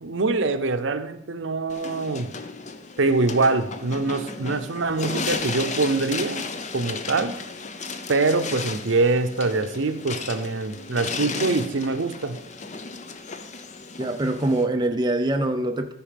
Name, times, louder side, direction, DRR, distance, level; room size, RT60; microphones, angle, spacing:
voice 1, 0.0-2.3 3.0-6.4 6.7-7.4 8.1-12.4, right 3 dB, 75° right, 0.7 m, -24 dB
sound 1, 1.7-14.7, left 4 dB, 35° left, 0.6 m, -34 dB
voice 2, 14.0-15.9, right 1 dB, 20° right, 0.5 m, -24 dB
13.5 x 5.0 x 5.2 m
head